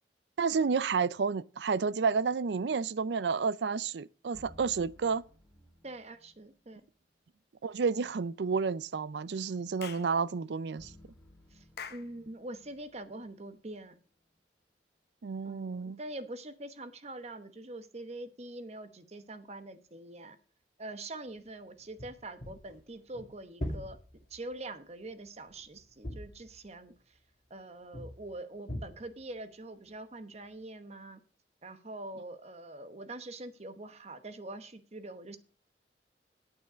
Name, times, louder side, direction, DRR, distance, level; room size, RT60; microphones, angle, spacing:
voice 1, 0.4-5.2 7.6-10.9 15.2-16.0, right 5 dB, 75° right, 0.5 m, -30 dB
sound 1, 4.3-6.5 10.8-14.0, left 1 dB, 10° left, 3.0 m, -58 dB
voice 2, 5.8-6.8 11.5-11.6 11.9-14.0 15.4-20.4 20.8-24.0 24.3-27.2 27.5-31.2 31.6-35.4, right 2 dB, 40° right, 1.1 m, -44 dB
Clapping / Chirp tweet, 9.8-10.1 11.8-12.1, left 7 dB, 65° left, 0.9 m, -43 dB
sound 2, 21.8-24.6 25.1-26.9 27.9-28.3 28.7-29.3, equal, 45° left, 2.4 m, -42 dB
9.5 x 8.8 x 5.1 m
head